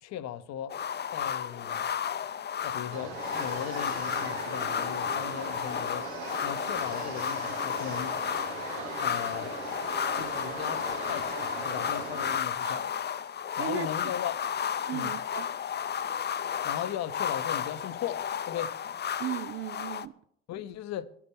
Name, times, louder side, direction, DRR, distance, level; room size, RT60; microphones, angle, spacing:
voice 1, 0.0-0.8 1.1-1.9 2.6-6.1 6.4-8.2 9.0-9.6 10.1-12.8 13.6-14.4 14.9-15.2 16.6-18.7 20.5-21.1, left 11 dB, 55° left, 0.8 m, -37 dB
sound 1, 0.7-20.1, left 8 dB, 35° left, 0.6 m, -33 dB
sound 2, 2.9-12.4, right 6 dB, 75° right, 1.2 m, -40 dB
voice 2, 13.6-13.9 14.9-15.5 19.2-20.2, right 13 dB, 45° right, 0.5 m, -36 dB
16.0 x 11.5 x 3.5 m
hypercardioid pair, 55°, 31 cm